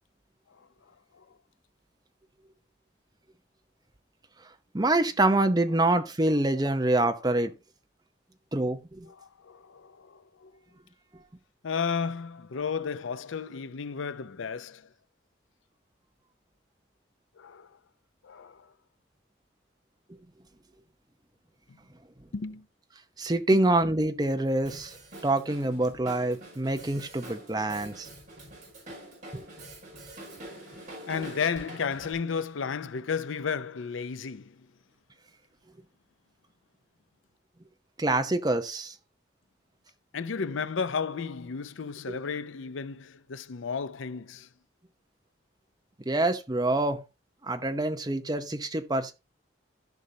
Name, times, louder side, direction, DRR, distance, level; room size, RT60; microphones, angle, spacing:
voice 1, 4.7-7.5 8.5-9.1 23.2-25.0 25.2-28.1 29.3-29.4 38.0-38.9 42.1-42.2 46.1-47.0 47.4-49.1, right 2 dB, 20° right, 0.8 m, -26 dB
voice 2, 9.1-10.5 11.6-14.9 17.4-17.8 18.2-18.7 21.7-21.8 22.3-22.6 31.1-34.6 40.1-44.5, left 6 dB, 85° left, 0.6 m, -33 dB
Drum kit, 24.6-32.1, right 1 dB, 40° right, 5.6 m, -45 dB
14.5 x 5.5 x 2.8 m
head